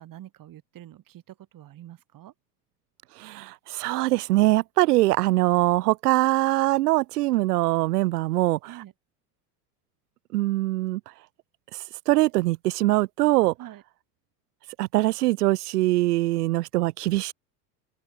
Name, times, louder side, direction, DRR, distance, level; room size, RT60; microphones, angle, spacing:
voice 1, 0.0-2.3 8.7-8.9 13.6-13.8, right 13 dB, 40° right, 7.2 m, -45 dB
voice 2, 3.2-8.6 10.3-11.0 11.7-13.5 14.8-17.3, right 18 dB, 65° right, 1.1 m, -23 dB
open air
figure-of-eight pair, 75°, 50 cm